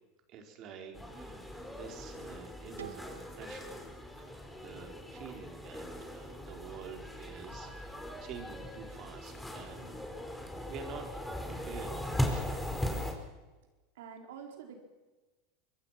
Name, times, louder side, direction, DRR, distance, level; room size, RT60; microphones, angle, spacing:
voice 1, 0.3-3.8 4.2-10.0 10.3-11.3 11.6-12.9, right 6 dB, 50° right, 3 dB, 4.7 m, -48 dB
sound 1, 0.9-13.1, left 1 dB, 5° left, 5.0 m, -39 dB
sound 2, 2.8-5.6, right 9 dB, 90° right, 1.5 m, -52 dB
voice 2, 13.9-14.8, right 7 dB, 75° right, 3 dB, 4.7 m, -47 dB
25.0 x 22.0 x 6.0 m, 1.2 s
hypercardioid pair, 90°, 0 cm